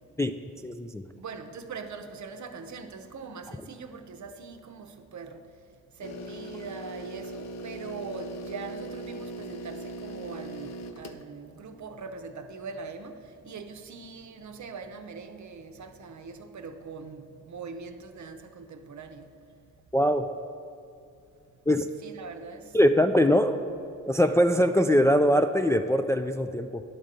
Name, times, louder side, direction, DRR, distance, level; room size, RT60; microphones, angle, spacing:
voice 1, 0.6-1.0 19.9-20.2 21.7-21.9 22.7-23.6 24.0-26.8, equal, 10° left, 0.3 m, -22 dB
voice 2, 1.2-5.4 6.0-19.3 22.0-22.7, right 4 dB, 55° right, 0.8 m, -42 dB
sound 1, 6.0-11.2, right 1 dB, 50° left, 0.6 m, -39 dB
10.5 x 3.7 x 6.6 m
cardioid pair, 55°, 34 cm